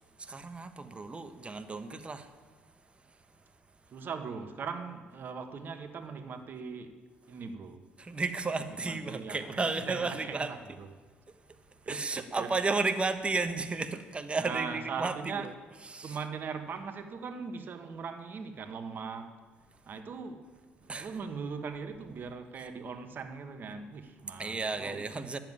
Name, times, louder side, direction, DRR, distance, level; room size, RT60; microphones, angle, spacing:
voice 1, 0.2-2.3 8.0-10.5 11.9-15.5 15.8-16.2 20.9-21.2 24.4-25.4, right 3 dB, 25° right, 1.1 m, -33 dB
voice 2, 3.9-6.9 7.3-7.8 8.8-10.6 11.8-12.5 14.4-15.5 16.0-19.3 19.9-20.5 20.8-25.0, right 5 dB, 50° right, 1.3 m, -40 dB
10.5 x 7.5 x 9.5 m
supercardioid pair, 65°, 4 cm